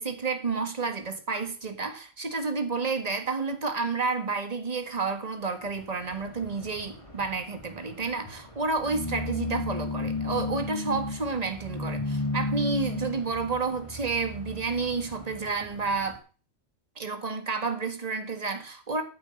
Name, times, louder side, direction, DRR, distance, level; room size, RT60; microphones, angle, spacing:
voice 1, 0.0-16.2 17.0-19.0, right 4 dB, 30° right, 1.7 m, -30 dB
sound 1, 5.7-16.2, left 2 dB, 20° left, 2.6 m, -35 dB
9.9 x 8.1 x 7.8 m
omnidirectional pair, 1.4 m